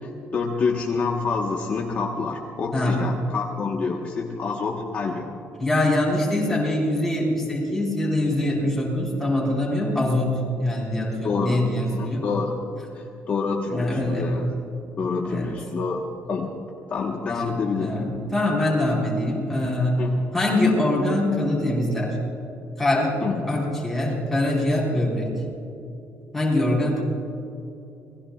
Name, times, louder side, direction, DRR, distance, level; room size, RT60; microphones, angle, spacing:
voice 1, 0.0-5.3 11.2-11.6 11.9-12.6 12.9-14.5 15.0-16.5 16.9-17.9 20.0-20.2 23.2-23.4, left 4 dB, 35° left, -1 dB, 1.2 m, -27 dB
voice 2, 5.6-12.3 13.7-14.3 15.2-15.5 17.3-17.4 17.8-20.0 20.3-22.2 22.8-23.2 23.5-25.3 26.3-27.0, left 1 dB, 5° left, -5 dB, 4.6 m, -23 dB
28.0 x 20.5 x 2.4 m, 2.9 s
cardioid pair, 175°, 5 cm